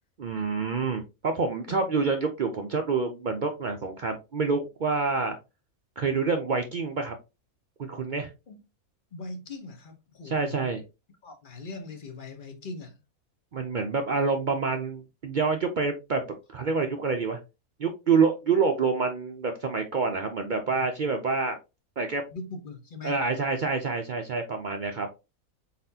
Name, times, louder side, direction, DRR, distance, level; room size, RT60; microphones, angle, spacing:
voice 1, 0.2-5.4 6.0-7.2 7.8-8.3 10.2-10.8 13.5-16.2 16.5-17.4 17.8-21.6 22.0-22.2 23.0-25.1, right 4 dB, 70° right, 0.4 m, -27 dB
voice 2, 9.1-10.7 11.2-12.9 22.3-23.2, left 3 dB, 45° left, 0.9 m, -40 dB
4.2 x 4.1 x 2.7 m
omnidirectional pair, 1.5 m